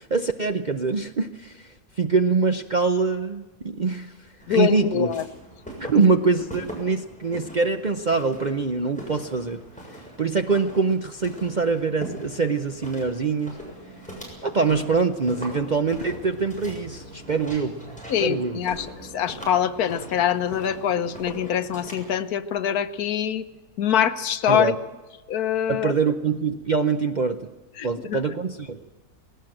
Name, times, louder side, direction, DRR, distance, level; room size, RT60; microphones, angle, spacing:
voice 1, 0.0-1.7 2.0-4.1 4.5-5.1 5.8-9.6 9.9-13.6 14.4-17.8 18.2-18.6 24.5-24.8 25.7-27.5 27.8-28.8, right 4 dB, 45° right, 7 dB, 0.6 m, -24 dB
Walk footsteps, 4.4-22.1, equal, 5° left, 7.0 m, -41 dB
voice 2, 4.5-5.2 18.1-23.4 23.8-24.7 25.3-25.9 27.8-28.2, left 9 dB, 75° left, 11 dB, 1.3 m, -24 dB
19.5 x 18.0 x 7.7 m, 1.2 s
omnidirectional pair, 1.6 m